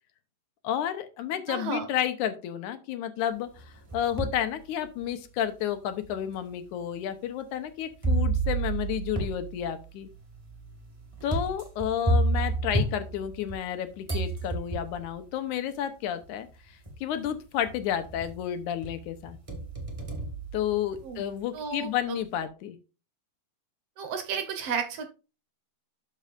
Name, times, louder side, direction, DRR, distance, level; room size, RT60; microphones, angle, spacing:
voice 1, 0.6-3.6 3.9-10.1 11.2-16.5 17.0-19.4 20.5-22.8, left 10 dB, 85° left, 9 dB, 2.3 m, -31 dB
voice 2, 1.5-1.9 21.0-21.2 21.5-22.2 24.0-25.1, right 6 dB, 65° right, 6 dB, 1.8 m, -33 dB
sound 1, 3.6-4.5 5.0-5.1 6.0-6.1 8.0-13.7 14.1-15.1 16.2-16.3 16.9-17.3 17.7-18.4 18.8-21.2, right 2 dB, 15° right, 1.2 m, -30 dB
12.5 x 5.4 x 2.5 m, 0.31 s
omnidirectional pair, 3.5 m